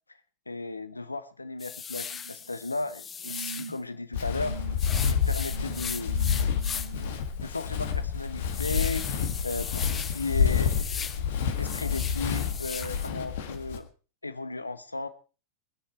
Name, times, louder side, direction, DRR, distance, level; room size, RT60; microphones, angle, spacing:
voice 1, 0.5-4.5 5.1-6.2 6.9-9.1 9.4-13.9 14.2-15.1, left 3 dB, 80° left, 13 dB, 1.0 m, -35 dB
sound 1, 1.6-3.8 4.8-7.0 7.5-7.6 8.0-11.2 11.5-13.1, left 7 dB, 20° left, 0.8 m, -38 dB
sound 2, 2.0-2.5 3.2-3.9 4.3-4.8 5.5-7.1 8.3-8.4, right 5 dB, 70° right, 1.0 m, -43 dB
Walk footsteps, 4.1-13.8, left 7 dB, 55° left, 1.7 m, -29 dB
20.5 x 10.0 x 4.5 m, 0.36 s
figure-of-eight pair, 90°, 0 cm